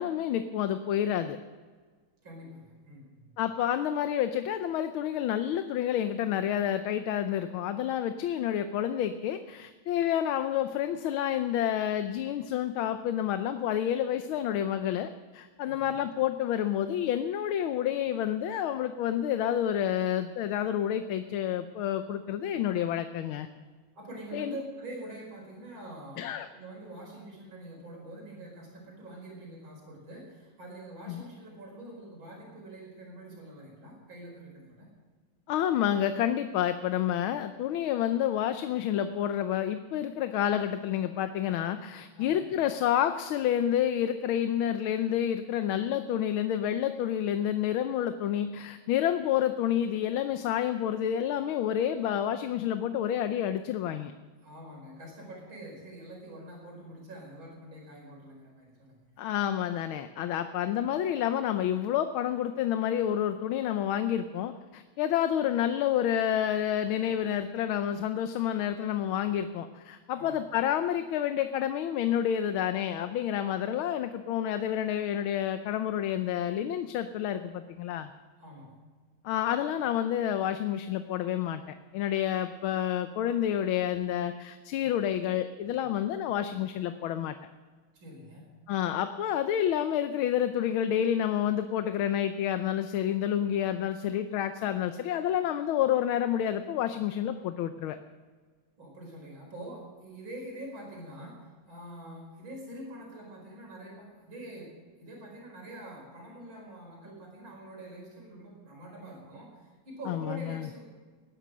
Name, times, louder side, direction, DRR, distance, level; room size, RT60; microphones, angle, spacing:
voice 1, 0.0-1.4 3.4-23.5 24.3-24.5 26.2-26.5 31.1-31.2 35.5-54.1 59.2-78.1 79.2-81.6 81.9-87.4 88.7-98.0 110.1-110.7, left 10 dB, 85° left, 9 dB, 1.6 m, -29 dB
voice 2, 2.2-3.4 15.7-16.0 24.0-34.9 42.2-42.4 54.4-59.0 70.1-70.4 78.4-78.7 87.9-88.4 98.8-101.3 101.7-104.7 105.0-110.8, right 1 dB, 75° right, -1 dB, 5.6 m, -45 dB
19.5 x 11.5 x 6.2 m, 1.5 s
omnidirectional pair, 2.2 m